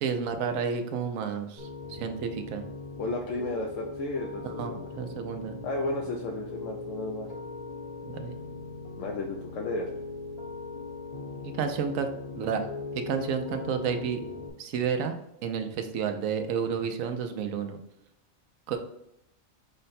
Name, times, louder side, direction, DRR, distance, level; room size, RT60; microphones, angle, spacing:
voice 1, 0.0-2.6 4.4-5.5 8.0-8.3 11.5-12.7 12.9-14.2 14.6-15.1 15.4-17.8 18.7-18.8, right 6 dB, 85° right, 7 dB, 1.0 m, -31 dB
Piano, 1.6-14.5, left 3 dB, 35° left, 0.8 m, -40 dB
voice 2, 3.0-4.9 5.6-7.3 9.0-9.9, left 2 dB, 75° left, 1 dB, 0.9 m, -33 dB
5.5 x 2.2 x 4.0 m, 0.80 s
omnidirectional pair, 1.4 m